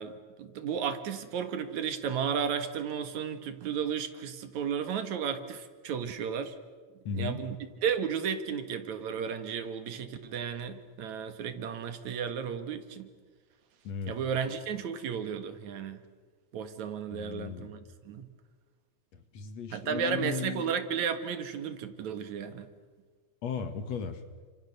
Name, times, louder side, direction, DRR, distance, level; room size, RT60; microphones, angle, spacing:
voice 1, 0.0-6.6 7.1-13.1 14.1-16.0 16.5-17.8 18.1-18.3 19.7-22.7, right 7 dB, 75° right, 9 dB, 3.0 m, -33 dB
voice 2, 7.0-7.4 13.8-14.2 17.1-17.7 19.1-20.8 23.4-24.2, left 6 dB, 65° left, 9 dB, 2.8 m, -36 dB
29.5 x 26.0 x 6.8 m, 1.5 s
omnidirectional pair, 3.4 m